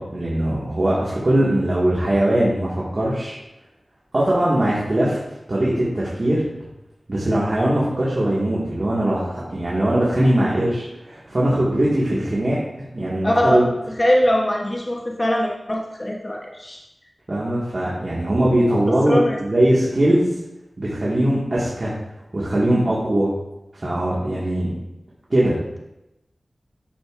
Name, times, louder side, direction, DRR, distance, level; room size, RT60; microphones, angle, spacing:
voice 1, 0.0-3.4 4.1-5.2 5.5-6.4 7.1-13.7 17.3-20.3 20.8-21.9 22.3-23.3 23.7-24.7 25.3-25.5, right 1 dB, 45° right, -7 dB, 1.8 m, -20 dB
voice 2, 13.2-13.7 14.0-16.8 18.9-19.4, equal, 25° left, -1 dB, 1.0 m, -21 dB
10.5 x 6.7 x 2.5 m, 0.93 s
wide cardioid pair, 75°, 0 cm